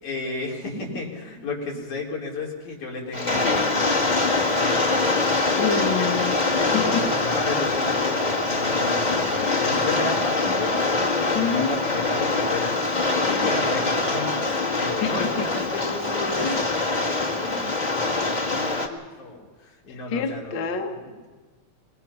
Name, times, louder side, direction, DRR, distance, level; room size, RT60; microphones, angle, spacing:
voice 1, 0.0-4.9 5.1-5.3 6.0-6.2 6.6-10.8 11.3-20.6 20.9-21.3, left 3 dB, 85° left, -3 dB, 5.2 m, -33 dB
Rain, 3.1-18.9, left 3 dB, 25° left, 0.9 m, -24 dB
voice 2, 5.6-6.3 6.7-7.0 11.3-11.8 15.0-15.3 16.4-16.6 20.1-20.9, left 6 dB, 45° left, 4 dB, 1.8 m, -26 dB
26.0 x 20.0 x 5.8 m, 1.4 s
omnidirectional pair, 3.4 m